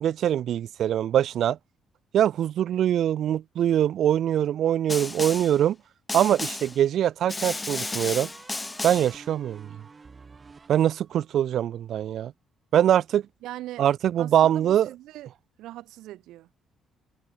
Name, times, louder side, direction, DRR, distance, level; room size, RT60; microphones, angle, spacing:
voice 1, 0.0-1.6 2.1-5.8 6.1-8.3 8.8-9.7 10.7-12.3 12.7-13.2 13.8-14.9, right 10 dB, 70° right, 0.6 m, -23 dB
Snare drum, 4.9-5.6 6.1-6.8 7.3-9.2, left 3 dB, 20° left, 1.1 m, -33 dB
sound 1, 7.9-11.4, right 4 dB, 30° right, 5.0 m, -50 dB
voice 2, 13.4-13.9 14.2-15.3 15.6-16.5, right 15 dB, 90° right, 5.0 m, -40 dB
cardioid pair, 90°, 0 cm